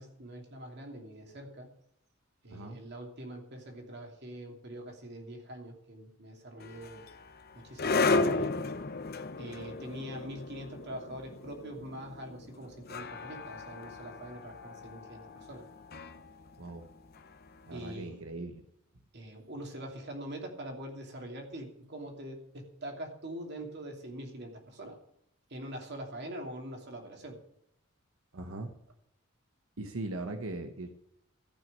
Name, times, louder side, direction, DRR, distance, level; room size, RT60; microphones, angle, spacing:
voice 1, 0.0-1.7 2.4-7.1 7.5-8.5 9.4-15.7 17.7-18.2 19.1-25.0 25.5-27.4, right 1 dB, 55° right, 2 dB, 2.9 m, -44 dB
voice 2, 2.5-2.8 16.6-16.9 17.6-18.6 28.3-28.7 29.8-30.9, right 2 dB, 90° right, 6 dB, 1.0 m, -39 dB
sound 1, 6.6-17.7, left 3 dB, 50° left, 0.9 m, -35 dB
14.0 x 6.1 x 8.7 m, 0.77 s
head